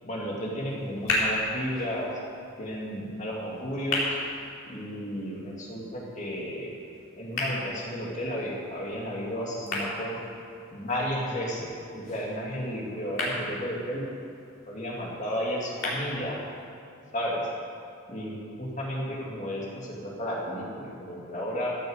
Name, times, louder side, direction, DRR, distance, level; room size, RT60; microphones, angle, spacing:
voice 1, 0.0-2.1 2.6-4.0 4.7-6.7 7.2-10.2 10.7-14.0 14.7-16.4 17.1-17.5 18.1-21.8, equal, 35° left, -3 dB, 2.5 m, -33 dB
sound 1, 0.6-16.6, left 1 dB, 60° left, 4.0 m, -36 dB
15.0 x 7.8 x 7.9 m, 2.5 s
head